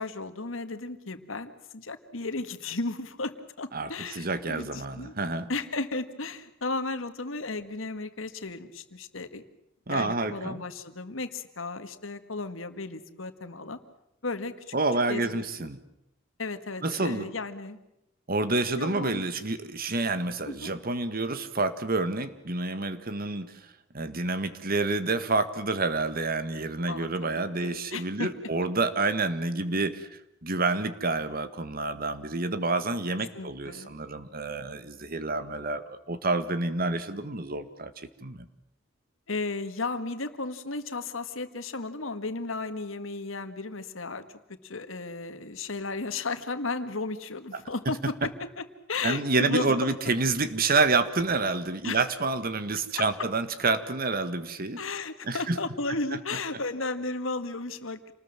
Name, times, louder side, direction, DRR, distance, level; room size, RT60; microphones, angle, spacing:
voice 1, 0.0-5.2 5.5-9.4 9.9-13.8 14.2-14.7 15.1-15.7 16.4-17.8 18.8-19.2 20.5-20.7 26.9-28.3 33.3-33.9 39.3-44.3 44.6-49.9 51.8-52.0 53.0-53.1 54.8-58.1, left 3 dB, 90° left, 10 dB, 1.9 m, -34 dB
voice 2, 3.7-5.5 9.9-10.6 14.7-15.8 16.8-17.3 18.3-23.5 23.9-38.5 49.0-54.8 55.3-55.6, right 3 dB, 50° right, 12 dB, 1.7 m, -28 dB
28.0 x 20.0 x 7.5 m, 0.84 s
head